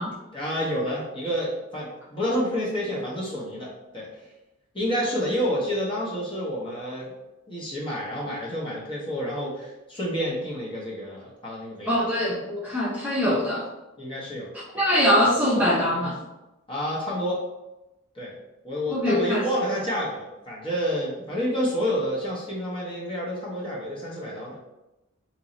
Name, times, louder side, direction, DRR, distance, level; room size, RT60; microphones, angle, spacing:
voice 1, 0.3-4.1 4.7-7.1 7.5-12.0 14.0-14.5 16.7-17.4 18.1-18.4 18.6-24.6, equal, 25° left, -5 dB, 0.8 m, -29 dB
voice 2, 11.9-13.7 14.7-16.2 18.9-19.4, equal, 5° right, -8 dB, 0.7 m, -23 dB
3.0 x 2.7 x 3.8 m, 0.98 s
head